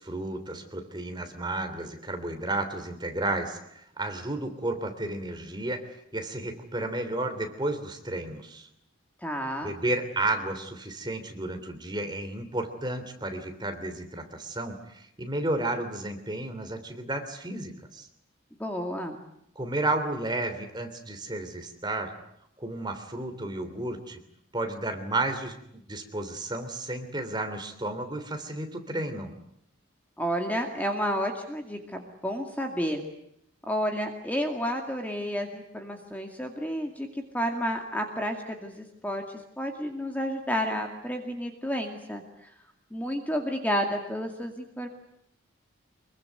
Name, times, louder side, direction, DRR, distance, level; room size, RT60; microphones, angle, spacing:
voice 1, 0.0-8.7 9.6-18.1 19.5-22.1 22.6-24.2 24.5-29.4, right 2 dB, 20° right, 6 dB, 3.2 m, -32 dB
voice 2, 9.2-9.7 18.6-19.2 30.2-33.0 33.7-37.1 37.3-39.2 39.6-42.2 42.9-44.9, equal, 10° left, 4 dB, 2.3 m, -31 dB
25.0 x 23.0 x 9.5 m, 0.75 s
head